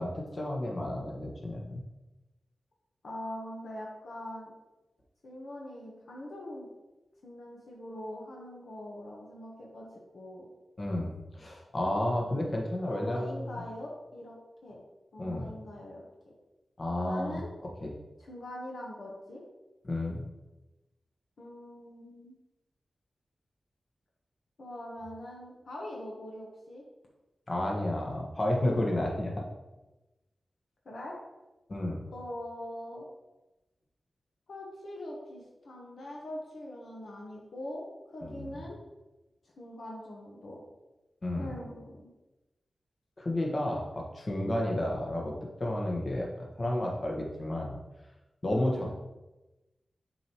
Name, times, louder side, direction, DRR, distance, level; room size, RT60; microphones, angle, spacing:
voice 1, 0.0-1.8 10.8-13.6 15.2-15.5 16.8-17.4 17.8-17.9 19.8-20.3 27.5-29.4 31.7-32.0 38.2-38.6 41.2-41.5 43.2-45.3 45.6-47.8 48.4-49.0, left 1 dB, 50° left, -1 dB, 1.3 m, -31 dB
voice 2, 3.0-4.5 5.2-6.7 7.2-9.9 10.1-10.5 12.8-14.8 15.1-16.0 17.1-17.5 18.2-19.4 21.4-22.3 24.6-26.8 30.8-31.2 32.1-33.1 34.5-38.8 39.6-40.6 41.4-42.1 48.5-48.9, left 1 dB, 75° left, -3 dB, 1.1 m, -42 dB
7.1 x 4.6 x 3.0 m, 1.1 s
cardioid pair, 50°, 0 cm